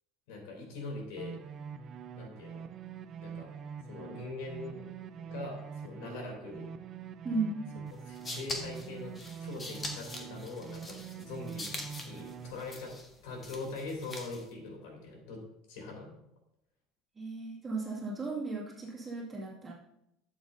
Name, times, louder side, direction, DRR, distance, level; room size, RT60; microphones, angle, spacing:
voice 1, 0.3-1.4 2.1-2.6 3.2-3.5 3.9-4.9 5.1-6.7 8.1-9.1 9.4-12.9 13.2-15.4 15.7-16.1, left 3 dB, 90° left, 0 dB, 3.2 m, -42 dB
sound 1, 1.2-12.5, right 7 dB, 35° right, 0.4 m, -44 dB
voice 2, 7.2-7.6 17.2-19.7, right 3 dB, 15° right, -5 dB, 2.2 m, -35 dB
sound 2, 7.9-14.5, left 2 dB, 20° left, 1.4 m, -43 dB
12.5 x 7.3 x 2.7 m, 0.82 s
cardioid pair, 155°, 0 cm